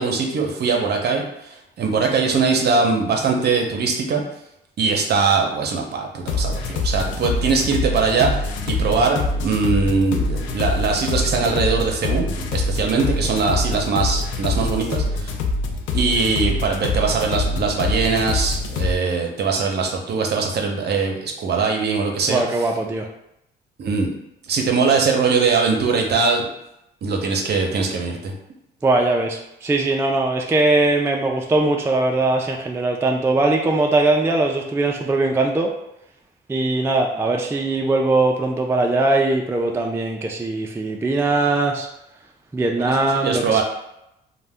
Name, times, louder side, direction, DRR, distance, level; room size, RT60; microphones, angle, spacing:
voice 1, 0.0-4.2 4.8-15.3 15.9-22.4 23.8-24.1 24.5-26.5 27.0-28.3 42.8-43.6, right 4 dB, 55° right, 2 dB, 0.6 m, -21 dB
sound 1, 6.2-18.9, left 3 dB, 75° left, 0.4 m, -24 dB
voice 2, 22.3-23.1 28.8-35.7 36.5-41.9 42.5-43.6, right 2 dB, 10° right, 1 dB, 0.3 m, -20 dB
2.6 x 2.1 x 3.4 m, 0.83 s
cardioid pair, 90°, 20 cm